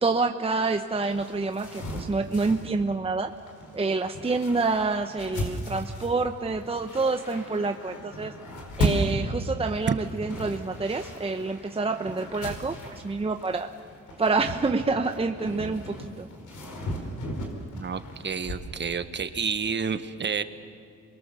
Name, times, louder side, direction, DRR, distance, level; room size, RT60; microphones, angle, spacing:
voice 1, 0.0-3.3 3.7-8.3 8.8-13.7 14.2-16.3, right 3 dB, 20° right, 6 dB, 0.9 m, -27 dB
sound 1, 0.7-18.7, equal, 75° left, 5.0 m, -36 dB
voice 2, 17.7-20.4, right 6 dB, 35° right, 10 dB, 1.3 m, -29 dB
27.5 x 22.5 x 6.9 m, 2.4 s
cardioid pair, 90°, 30 cm